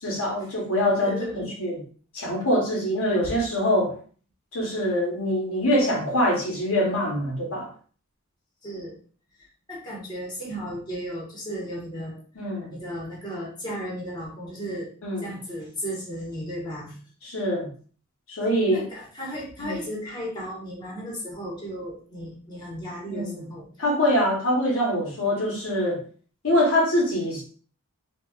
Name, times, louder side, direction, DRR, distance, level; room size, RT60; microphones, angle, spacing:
voice 1, 0.0-1.8 2.1-4.0 4.5-7.7 12.4-12.7 15.0-15.3 17.2-17.7 18.3-18.9 19.6-19.8 23.1-23.4 23.8-26.0 26.4-27.4, equal, 70° left, -1 dB, 0.9 m, -24 dB
voice 2, 0.9-1.5 8.6-8.9 9.4-12.2 12.7-14.9 15.2-17.0 18.7-23.7, equal, 20° left, -4 dB, 1.1 m, -35 dB
4.0 x 2.3 x 2.3 m, 0.42 s
head